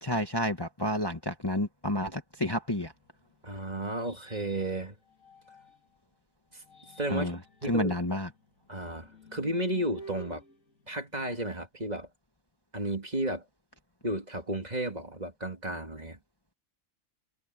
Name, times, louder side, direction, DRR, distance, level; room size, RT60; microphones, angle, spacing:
voice 1, 0.0-2.9 7.1-8.3, left 1 dB, 20° left, 1.5 m, -30 dB
sound 1, 2.8-6.0 6.5-11.7, equal, 90° left, 2.9 m, -52 dB
voice 2, 3.4-5.0 6.5-6.6 7.0-7.4 7.6-8.0 8.7-10.4 10.9-12.1 12.7-13.4 14.0-16.2, right 1 dB, 30° right, 2.5 m, -33 dB
omnidirectional pair, 1.3 m